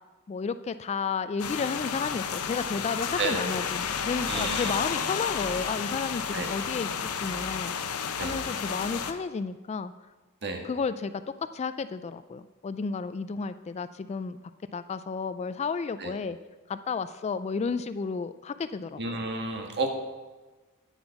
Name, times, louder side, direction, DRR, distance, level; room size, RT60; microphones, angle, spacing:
voice 1, 0.3-6.9 7.2-9.9 10.6-14.4 14.7-16.4 16.7-19.2, left 5 dB, 30° left, 13 dB, 0.3 m, -32 dB
sound 1, 1.4-9.1, left 6 dB, 85° left, 0.8 m, -32 dB
voice 2, 4.3-4.8 6.3-6.5 8.2-8.4 10.4-10.6 16.0-16.1 19.0-19.9, right 3 dB, 50° right, 4 dB, 1.5 m, -31 dB
9.6 x 8.2 x 5.8 m, 1.3 s
head